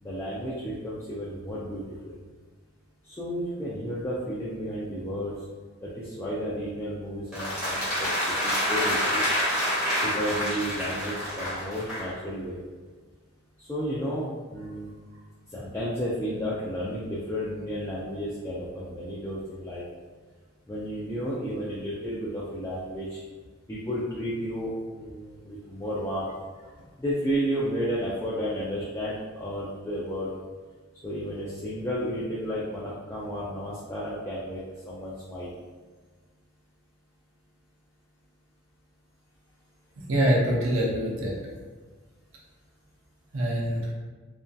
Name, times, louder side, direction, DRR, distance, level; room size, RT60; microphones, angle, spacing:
voice 1, 0.0-2.2 3.0-5.3 5.8-9.3 10.0-12.6 13.6-14.9 15.5-19.8 20.7-23.2 23.7-26.3 27.0-30.4 31.0-35.5, equal, 15° left, -8 dB, 0.3 m, -32 dB
sound 1, 7.3-12.1, equal, 5° right, 0.8 m, -27 dB
voice 2, 40.1-41.4 43.3-43.9, equal, 70° right, -3 dB, 0.5 m, -24 dB
2.6 x 2.3 x 2.2 m, 1.4 s
head